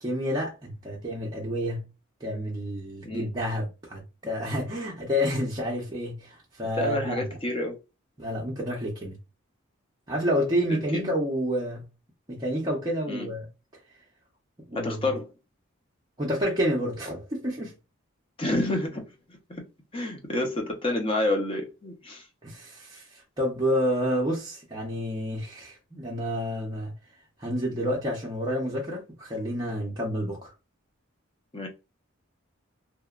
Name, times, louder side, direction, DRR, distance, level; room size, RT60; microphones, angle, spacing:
voice 1, 0.0-1.8 2.2-7.2 8.2-9.2 10.1-11.8 12.3-13.5 14.7-14.9 16.2-17.7 22.4-26.9 27.4-30.5, equal, 20° right, 0.5 m, -29 dB
voice 2, 6.8-7.8 10.7-11.1 13.1-13.3 14.7-15.3 18.4-19.0 19.5-19.6 19.9-22.2 31.5-31.7, left 1 dB, 25° left, 0.6 m, -29 dB
2.8 x 2.1 x 2.3 m
head